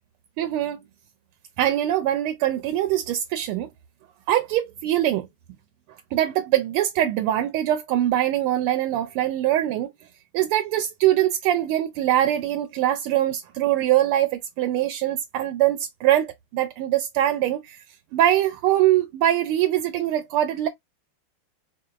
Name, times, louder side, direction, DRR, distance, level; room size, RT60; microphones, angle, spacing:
voice 1, 0.4-0.8 1.6-3.7 4.3-5.3 6.1-9.9 10.3-17.8 18.1-20.7, right 12 dB, 80° right, 1.5 m, -23 dB
4.9 x 2.8 x 2.4 m
omnidirectional pair, 2.4 m